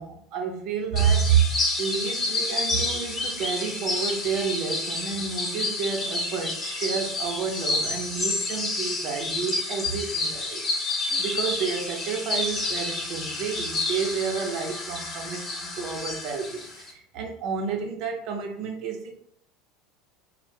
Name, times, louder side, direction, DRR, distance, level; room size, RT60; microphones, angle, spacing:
voice 1, 0.0-1.5 1.8-19.1, right 6 dB, 60° right, 3 dB, 0.5 m, -29 dB
sound 1, 1.0-16.9, left 2 dB, 35° left, 0.6 m, -29 dB
2.1 x 2.0 x 3.2 m, 0.65 s
hypercardioid pair, 80°, 0 cm